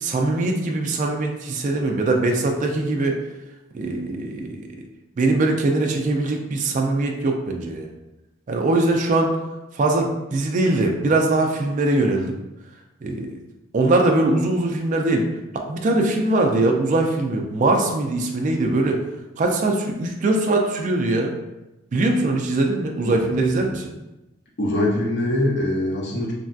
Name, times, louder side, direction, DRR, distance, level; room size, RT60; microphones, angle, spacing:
voice 1, 0.0-3.2 3.7-4.7 5.2-7.9 8.5-9.3 9.7-12.4 13.0-13.4 13.7-15.3 15.5-19.0 19.4-21.3 21.9-23.9, right 2 dB, 35° right, 2 dB, 0.3 m, -21 dB
voice 2, 23.0-23.7 24.6-26.3, left 1 dB, 50° left, -2 dB, 0.6 m, -24 dB
3.2 x 2.5 x 2.3 m, 0.98 s
head